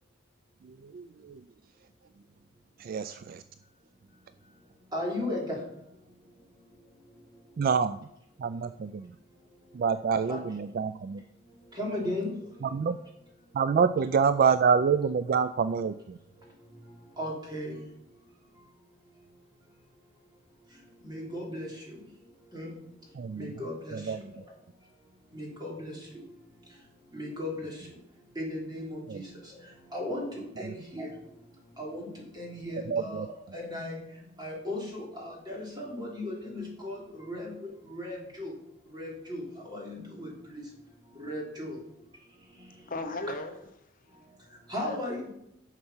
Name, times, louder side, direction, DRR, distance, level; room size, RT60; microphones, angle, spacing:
voice 1, 0.8-1.4 2.8-3.4 7.6-8.0 8.4-9.1 9.7-11.2 12.6-13.0 13.5-16.2 23.2-23.5 23.9-24.3 29.1-29.2 30.6-30.7 32.9-33.3, right 6 dB, 45° right, 13 dB, 0.3 m, -27 dB
voice 2, 4.9-5.6 10.3-10.4 11.7-12.4 12.8-12.9 17.2-17.8 21.0-22.0 22.5-22.7 23.3-24.4 25.3-26.2 27.1-27.9 28.3-29.6 29.9-31.1 31.8-33.3 33.5-34.0 34.4-38.6 38.9-40.6 41.1-41.8 44.7-45.3, left 1 dB, 20° right, -2 dB, 3.1 m, -36 dB
voice 3, 42.9-44.2 44.8-45.3, left 2 dB, 45° left, 7 dB, 0.9 m, -38 dB
11.0 x 6.6 x 5.6 m, 0.80 s
head